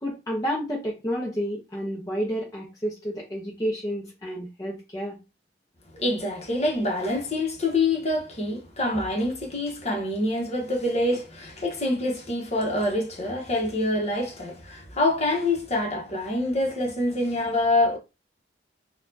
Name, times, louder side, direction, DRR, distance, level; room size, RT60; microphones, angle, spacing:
voice 1, 0.0-5.2, equal, 20° left, 0.8 m, -30 dB
voice 2, 5.9-18.0, left 2 dB, 35° left, 1.1 m, -26 dB
4.1 x 2.4 x 2.7 m
head